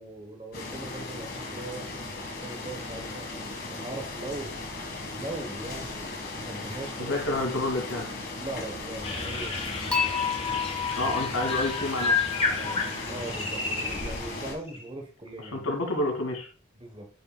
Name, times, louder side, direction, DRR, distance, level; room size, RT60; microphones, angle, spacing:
voice 1, 0.0-2.0 2.4-4.6 5.1-7.2 8.4-9.7 12.5-15.7 16.7-17.1, right 2 dB, 25° right, 5 dB, 1.2 m, -40 dB
sound 1, 0.5-14.5, left 2 dB, 45° left, 1.8 m, -37 dB
voice 2, 7.0-8.1 10.9-12.1 15.5-16.5, left 2 dB, 85° left, 1 dB, 2.5 m, -29 dB
sound 2, 9.0-14.3 14.7-14.9, left 4 dB, 25° left, 1.0 m, -31 dB
Dishes pots and pans / Chink clink, 9.9-13.1, left 7 dB, 5° left, 1.4 m, -31 dB
8.6 x 6.5 x 2.4 m, 0.35 s
head